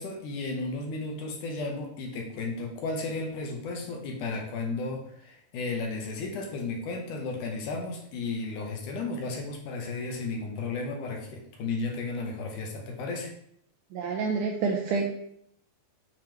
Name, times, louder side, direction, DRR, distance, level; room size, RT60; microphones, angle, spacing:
voice 1, 0.0-13.3, left 3 dB, 75° left, 1 dB, 2.3 m, -34 dB
voice 2, 13.9-15.1, right 4 dB, 85° right, 0 dB, 1.8 m, -28 dB
7.4 x 4.9 x 3.0 m, 0.71 s
omnidirectional pair, 4.1 m